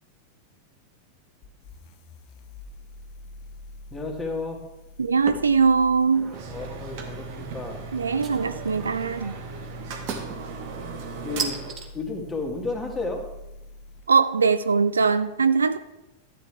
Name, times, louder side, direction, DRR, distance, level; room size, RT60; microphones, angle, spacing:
sound 1, 1.4-14.1, left 1 dB, 40° left, 0.8 m, -44 dB
voice 1, 3.9-4.6 6.5-7.8 11.2-11.6 11.9-13.2, left 3 dB, 10° left, 0 dB, 2.3 m, -32 dB
voice 2, 5.0-6.3 7.9-9.4 14.1-15.8, right 5 dB, 75° right, 13 dB, 0.4 m, -21 dB
sound 2, 5.3-5.6 6.0-6.5 8.2-8.8 10.1-10.4 11.4-11.9, right 6 dB, 30° right, 1.3 m, -33 dB
sound 3, 6.3-11.7, right 5 dB, 45° right, 1.4 m, -38 dB
12.5 x 8.9 x 3.5 m, 0.95 s
figure-of-eight pair, 90°, 0 cm